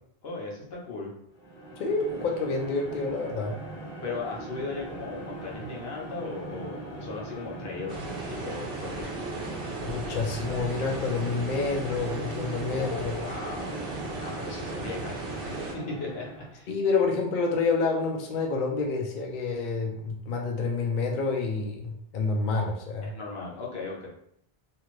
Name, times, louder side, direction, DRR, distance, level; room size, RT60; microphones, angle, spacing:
voice 1, 0.2-1.1 4.0-9.2 12.7-13.8 14.2-16.7 23.0-24.1, left 3 dB, 80° left, -3 dB, 1.1 m, -37 dB
sound 1, 1.3-16.6, right 2 dB, 45° left, 1.4 m, -40 dB
voice 2, 1.8-3.6 9.8-13.1 16.7-23.1, left 4 dB, 60° left, 1 dB, 0.6 m, -28 dB
sound 2, 7.9-15.7, right 2 dB, 65° right, 0.8 m, -36 dB
2.8 x 2.5 x 3.0 m, 0.71 s
omnidirectional pair, 1.0 m